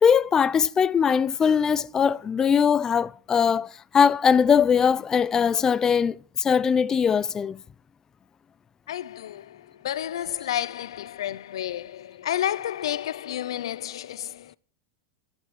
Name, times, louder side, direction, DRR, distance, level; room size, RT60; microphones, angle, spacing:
voice 1, 0.0-7.6, left 7 dB, 20° left, 0.6 m, -21 dB
voice 2, 8.9-14.6, left 11 dB, 85° left, 0.8 m, -31 dB
12.5 x 12.0 x 6.1 m
supercardioid pair, 120°, 3 cm